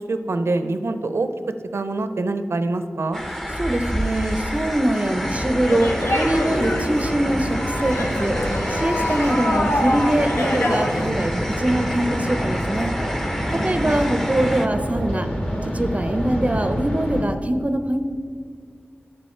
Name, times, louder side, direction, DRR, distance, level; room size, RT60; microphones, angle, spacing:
voice 1, 0.0-1.3 1.7-3.2 13.5-14.0, right 2 dB, 85° right, 9 dB, 0.5 m, -25 dB
sound 1, 3.1-14.7, equal, 10° left, 0.8 m, -29 dB
voice 2, 3.6-8.4 8.7-12.9 13.5-15.3 15.6-18.0, right 1 dB, 30° right, 8 dB, 0.5 m, -23 dB
sound 2, 5.1-17.2, equal, 30° left, 1.7 m, -28 dB
sound 3, 5.7-11.1, left 1 dB, 70° left, 1.0 m, -26 dB
8.6 x 6.9 x 4.3 m, 2.1 s
wide cardioid pair, 55°, 4 cm